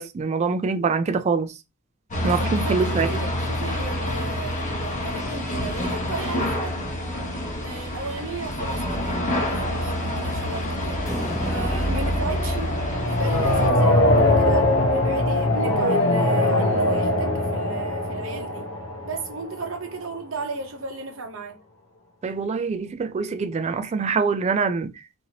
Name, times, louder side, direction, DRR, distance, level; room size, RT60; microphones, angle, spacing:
voice 1, 0.0-1.5 2.2-3.1 22.2-24.9, right 5 dB, 30° right, 0.3 m, -24 dB
sound 1, 2.1-13.7, left 1 dB, 40° left, 0.9 m, -27 dB
voice 2, 2.1-6.8 7.6-11.0 11.4-12.8 13.1-18.7 19.0-21.6, right 3 dB, 70° right, 0.8 m, -35 dB
sound 2, 9.0-19.9, left 1 dB, 80° left, 0.6 m, -23 dB
sound 3, 11.1-14.4, equal, ahead, 0.7 m, -37 dB
2.9 x 2.6 x 2.8 m
head